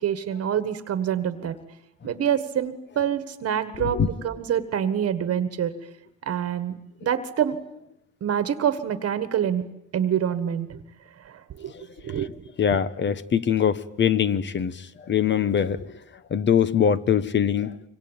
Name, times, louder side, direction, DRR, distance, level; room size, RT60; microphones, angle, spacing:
voice 1, 0.0-1.6 2.0-5.7 6.2-7.6 8.2-9.6 9.9-10.8 11.2-12.3, right 9 dB, 45° right, 11 dB, 1.6 m, -26 dB
voice 2, 11.7-12.2 12.6-16.0 16.3-17.9, left 8 dB, 35° left, 16 dB, 1.2 m, -23 dB
26.5 x 25.0 x 9.0 m, 0.80 s
cardioid pair, 145°, 32 cm